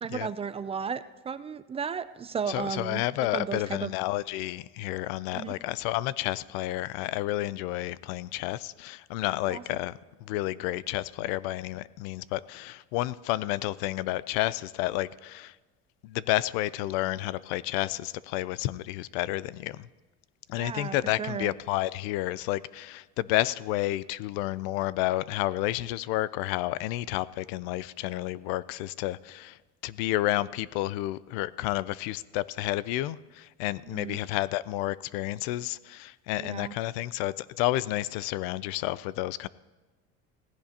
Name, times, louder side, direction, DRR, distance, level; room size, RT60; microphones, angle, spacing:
voice 1, 0.0-3.0 3.3-3.9 5.3-5.5 9.5-9.6 20.6-21.5 33.9-34.2 36.4-36.7, right 6 dB, 20° right, 14 dB, 0.3 m, -34 dB
voice 2, 2.5-15.5 16.0-19.9 20.5-39.5, left 16 dB, 85° left, 19 dB, 0.5 m, -31 dB
17.5 x 15.5 x 2.8 m, 1.2 s
cardioid pair, 120°, 30 cm